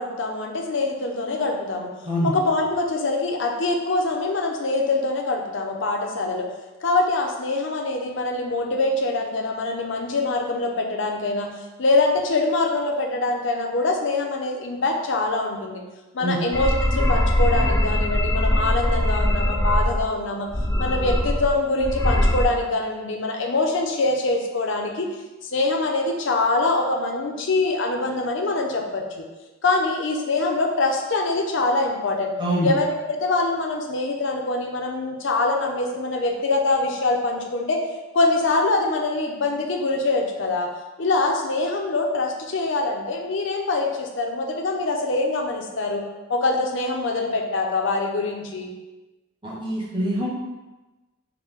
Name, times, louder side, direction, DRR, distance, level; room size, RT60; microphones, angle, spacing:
voice 1, 0.0-1.9 2.2-6.5 6.8-11.5 11.8-15.8 16.1-20.5 20.8-25.1 25.5-29.0 29.6-32.3 32.6-37.8 38.1-40.7 41.0-46.0 46.3-48.7, left 2 dB, 65° left, 1 dB, 0.6 m, -24 dB
voice 2, 2.0-2.4 16.2-16.4 32.4-32.7 49.4-50.3, right 1 dB, 25° right, -5 dB, 0.8 m, -24 dB
sound 1, 16.5-20.0 20.5-21.5 21.8-22.4, left 1 dB, 15° left, 0.3 m, -21 dB
5.8 x 2.1 x 3.6 m, 1.1 s
head